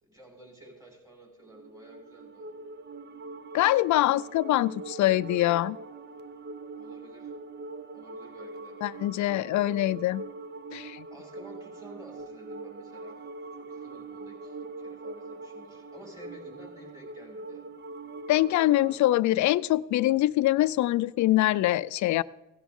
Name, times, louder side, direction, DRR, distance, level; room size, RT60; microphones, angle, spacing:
voice 1, 0.0-2.5 6.7-7.3 7.9-8.8 9.3-9.4 11.1-13.3 13.6-17.7, right 1 dB, 10° right, -1 dB, 5.3 m, -51 dB
sound 1, 1.4-19.0, right 3 dB, 35° right, 0.7 m, -42 dB
voice 2, 3.5-5.8 8.8-10.2 10.7-11.1 18.3-22.2, left 15 dB, 70° left, 17 dB, 0.5 m, -24 dB
17.0 x 11.0 x 3.7 m, 1.0 s
cardioid pair, 90°, 30 cm